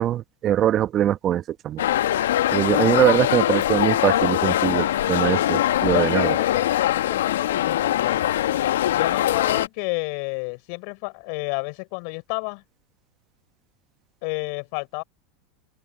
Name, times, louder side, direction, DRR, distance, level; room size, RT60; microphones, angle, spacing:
voice 1, 0.0-1.8 2.5-6.4, right 11 dB, 40° right, 1.0 m, -22 dB
sound 1, 1.8-9.7, left 12 dB, 80° left, 1.2 m, -22 dB
voice 2, 5.9-8.2 8.9-12.6 14.2-15.0, left 40 dB or more, 60° left, 6.4 m, -30 dB
hypercardioid pair, 100°, 0 cm